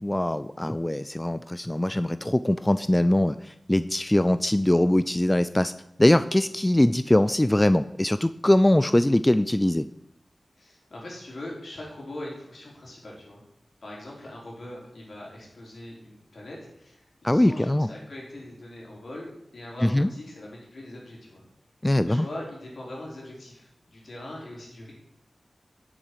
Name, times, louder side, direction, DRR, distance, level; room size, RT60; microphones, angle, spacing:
voice 1, 0.0-5.7 6.0-9.9 17.2-17.9 19.8-20.1 21.8-22.3, left 1 dB, 15° left, 13 dB, 0.3 m, -22 dB
voice 2, 10.6-13.4 13.8-21.4 22.0-24.9, left 1 dB, 70° left, -3 dB, 4.1 m, -41 dB
10.5 x 7.4 x 4.9 m, 0.83 s
wide cardioid pair, 75°, 0 cm